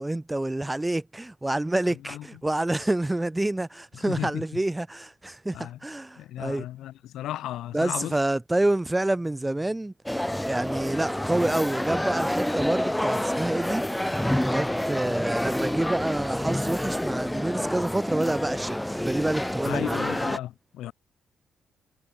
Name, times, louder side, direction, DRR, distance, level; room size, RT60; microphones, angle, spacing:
voice 1, 0.0-6.7 7.7-9.9 10.3-13.8 14.5-20.0, right 1 dB, 10° right, 0.6 m, -28 dB
voice 2, 4.0-4.4 5.5-5.8 6.2-8.1 19.6-20.9, left 13 dB, 80° left, 1.3 m, -34 dB
sound 1, 10.1-20.4, left 1 dB, 5° left, 1.0 m, -28 dB
cardioid pair, 90°, 0 cm